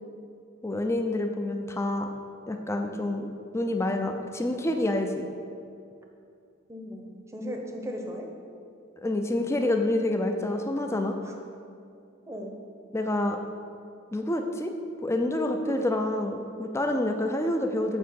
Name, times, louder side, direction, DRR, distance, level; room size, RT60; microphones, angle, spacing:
voice 1, 0.6-2.1 2.5-5.3 9.0-11.1 12.9-13.4 14.1-14.7 15.0-18.0, left 1 dB, 15° left, 4 dB, 0.5 m, -28 dB
voice 2, 6.7-8.3 11.2-11.4 12.3-12.5, equal, 15° right, 2 dB, 0.8 m, -37 dB
8.0 x 4.7 x 6.6 m, 2.4 s
head